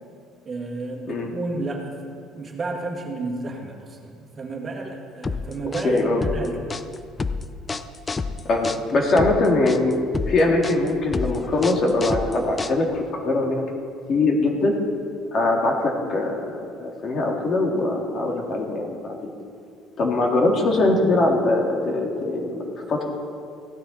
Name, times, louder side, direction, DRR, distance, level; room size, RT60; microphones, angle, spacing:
voice 1, 0.4-6.7, right 3 dB, 30° right, 0 dB, 2.0 m, -32 dB
sound 1, 5.2-13.1, left 4 dB, 20° left, 0.5 m, -29 dB
voice 2, 5.8-6.2 8.5-9.9 10.3-13.6 14.1-14.7 15.3-19.3 20.0-23.0, left 2 dB, 45° left, 1 dB, 2.0 m, -22 dB
16.0 x 9.8 x 4.3 m, 2.3 s
cardioid pair, 110°, 0 cm